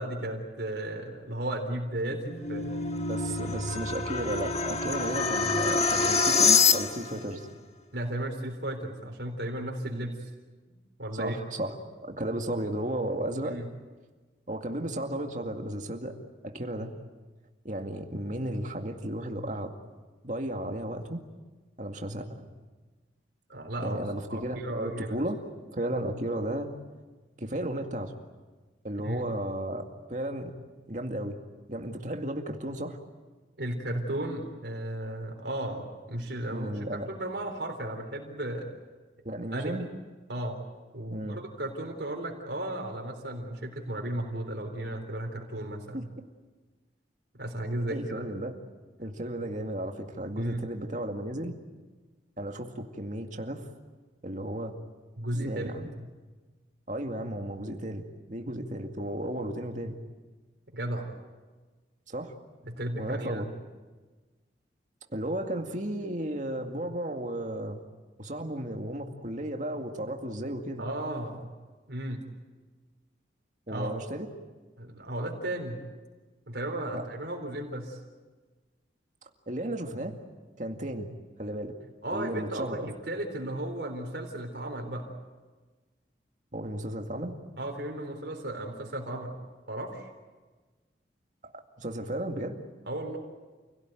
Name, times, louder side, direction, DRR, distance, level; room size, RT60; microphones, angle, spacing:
voice 1, 0.0-2.9 7.9-10.3 11.0-11.4 13.4-13.7 23.5-24.0 24.3-25.2 29.0-29.2 33.6-38.7 39.5-39.9 40.3-40.6 40.9-46.1 47.4-48.3 50.4-50.6 55.2-55.8 60.7-61.1 62.6-63.5 70.8-71.5 71.9-72.2 73.7-73.9 74.8-75.8 76.5-78.0 82.0-82.8 83.1-85.2 87.6-89.4 89.7-90.1 92.9-93.2, right 1 dB, 65° right, 2 dB, 3.8 m, -34 dB
sound 1, 2.1-7.2, left 5 dB, 35° left, 1.5 m, -26 dB
voice 2, 3.1-7.5 11.1-11.7 12.0-13.6 14.5-16.1 16.4-16.9 17.6-19.7 20.2-21.2 21.8-22.4 23.8-25.4 25.7-26.7 27.4-28.1 28.8-29.8 30.1-30.6 30.9-31.4 31.7-33.0 36.5-37.1 39.2-39.9 41.1-41.4 45.9-46.0 47.9-48.5 49.0-51.5 52.4-53.7 54.2-54.7 55.3-55.9 56.9-58.0 58.3-60.0 62.1-62.3 63.0-63.5 65.1-67.8 68.2-70.9 73.7-74.3 76.9-77.1 79.5-80.1 80.6-81.1 81.4-81.7 82.1-82.9 86.5-87.3 91.4-92.6, right 1 dB, 40° right, 3 dB, 2.2 m, -34 dB
29.0 x 17.5 x 9.2 m, 1.3 s
head